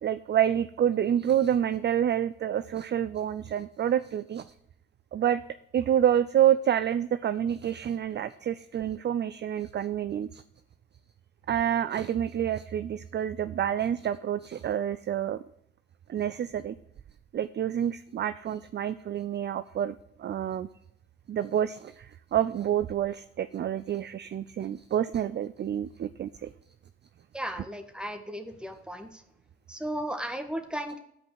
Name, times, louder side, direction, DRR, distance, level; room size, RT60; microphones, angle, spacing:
voice 1, 0.0-4.5 5.1-5.4 5.7-10.4 11.5-15.4 16.1-16.7 17.3-20.7 21.3-26.5, right 10 dB, 35° right, 14 dB, 0.4 m, -28 dB
voice 2, 27.3-29.2 29.7-31.0, right 1 dB, 5° right, 6 dB, 1.6 m, -35 dB
9.6 x 5.2 x 7.4 m, 0.74 s
hypercardioid pair, 45°, 33 cm